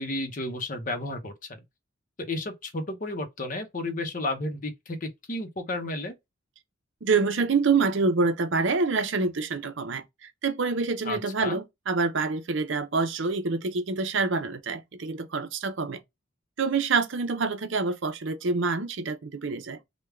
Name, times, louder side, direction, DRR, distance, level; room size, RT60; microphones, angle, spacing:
voice 1, 0.0-1.6 2.2-6.1 11.0-11.6, left 2 dB, 40° left, 0.7 m, -32 dB
voice 2, 7.0-10.0 10.4-16.0 16.6-19.8, right 4 dB, 65° right, 0.6 m, -26 dB
3.4 x 2.2 x 3.4 m
head